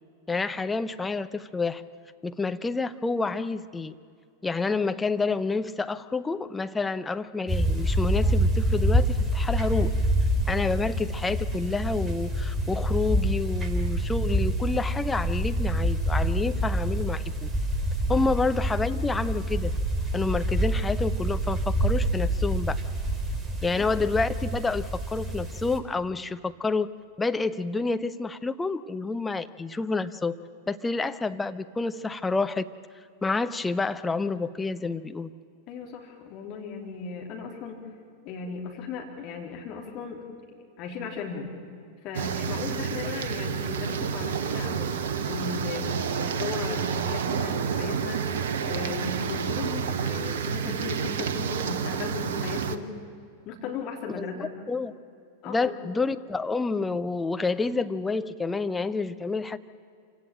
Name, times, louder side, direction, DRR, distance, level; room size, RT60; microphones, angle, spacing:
voice 1, 0.3-1.8 2.2-4.0 4.4-9.9 10.5-17.5 18.1-19.7 20.1-22.8 23.6-26.9 27.2-30.4 30.7-32.7 33.2-35.3 54.2-54.9 55.4-59.6, left 3 dB, 10° left, 10 dB, 0.8 m, -28 dB
sound 1, 7.5-25.8, right 1 dB, 15° right, 2.7 m, -27 dB
voice 2, 35.7-37.8 38.2-40.2 40.8-41.5 42.0-45.0 45.3-48.2 48.6-52.9 53.4-54.5 55.4-55.7, left 5 dB, 40° left, 2 dB, 3.4 m, -36 dB
sound 2, 42.1-52.8, right 7 dB, 60° right, 1.0 m, -29 dB
26.5 x 17.0 x 8.9 m, 2.3 s
figure-of-eight pair, 90°, 0 cm